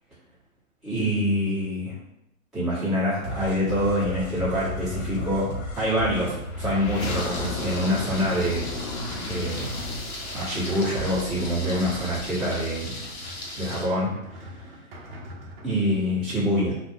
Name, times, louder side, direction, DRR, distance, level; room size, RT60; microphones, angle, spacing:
voice 1, 0.8-2.0 2.5-8.7 9.3-9.7 10.3-13.0 13.6-14.6 15.6-16.7, equal, ahead, -14 dB, 0.9 m, -26 dB
sound 1, 3.2-12.6, left 2 dB, 80° left, 0.8 m, -34 dB
sound 2, 5.9-15.7, equal, 45° right, 0.5 m, -44 dB
Thunder, 7.0-13.9, left 2 dB, 50° left, 0.7 m, -38 dB
2.5 x 2.0 x 3.3 m, 0.81 s
hypercardioid pair, 145°, 42 cm